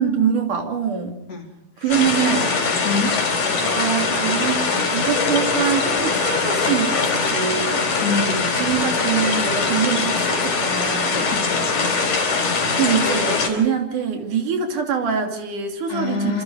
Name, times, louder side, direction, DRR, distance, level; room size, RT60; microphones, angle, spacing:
voice 1, 0.0-1.2 1.8-2.5 3.6-4.7 4.9-7.9 8.6-11.2 12.7-16.4, right 7 dB, 70° right, 4 dB, 4.3 m, -24 dB
sound 1, 1.9-13.5, left 4 dB, 70° left, 5.6 m, -22 dB
voice 2, 2.8-3.2 8.0-8.5 11.1-11.8 15.9-16.4, left 4 dB, 50° left, 2 dB, 4.6 m, -26 dB
27.5 x 25.5 x 4.8 m, 0.93 s
omnidirectional pair, 3.7 m